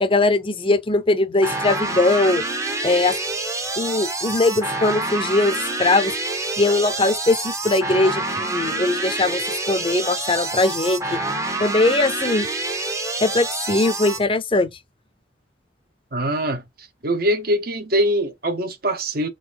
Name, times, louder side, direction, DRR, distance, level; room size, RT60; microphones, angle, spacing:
voice 1, 0.0-2.4 2.8-3.2 3.8-6.1 6.6-11.2 11.6-12.5 13.2-14.7, left 2 dB, 30° left, 0.7 m, -20 dB
sound 1, 1.4-14.2, right 2 dB, 15° right, 0.8 m, -27 dB
voice 2, 16.1-16.6 17.0-19.3, equal, 50° right, 1.0 m, -22 dB
4.0 x 2.6 x 4.1 m
head